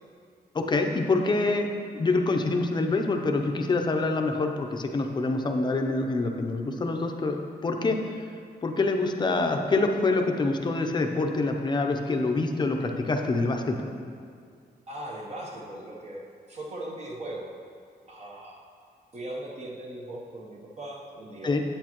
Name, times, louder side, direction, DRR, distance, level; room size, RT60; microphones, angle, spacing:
voice 1, 0.5-1.7 1.9-8.0 8.6-13.9 21.4-21.6, left 3 dB, 25° left, 3 dB, 0.6 m, -26 dB
voice 2, 14.9-17.5 18.1-18.7 19.1-21.6, right 1 dB, 40° right, -1 dB, 0.9 m, -39 dB
8.4 x 8.4 x 3.0 m, 2.2 s
wide cardioid pair, 160°, 17 cm